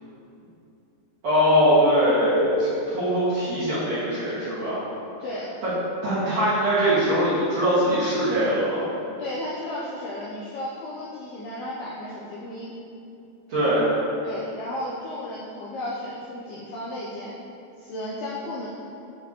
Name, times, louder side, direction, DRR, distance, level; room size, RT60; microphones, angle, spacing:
voice 1, 1.2-4.8 6.0-8.9 13.5-13.9, equal, 55° right, -13 dB, 2.0 m, -21 dB
voice 2, 9.2-12.7 14.2-17.4 17.8-18.7, left 1 dB, 80° left, -6 dB, 2.3 m, -34 dB
8.4 x 7.2 x 3.0 m, 2.7 s
omnidirectional pair, 5.4 m